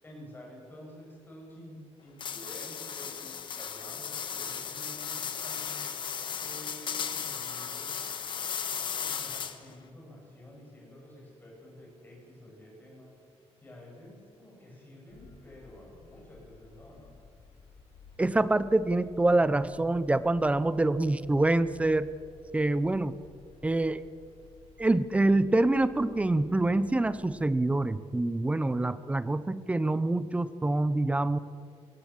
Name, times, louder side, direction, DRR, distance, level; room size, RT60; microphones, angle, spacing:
voice 1, 0.0-5.8 6.4-7.9 9.0-13.1 13.6-17.1, left 1 dB, 15° left, -2 dB, 7.9 m, -50 dB
sound 1, 2.2-9.8, left 7 dB, 45° left, 1.4 m, -36 dB
sound 2, 15.1-27.6, left 4 dB, 85° left, 7.2 m, -55 dB
voice 2, 18.2-22.1 22.5-23.1 23.6-24.0 24.8-31.4, right 2 dB, 10° right, 14 dB, 0.7 m, -26 dB
23.0 x 17.5 x 7.5 m, 2.3 s
wide cardioid pair, 165°, 11 cm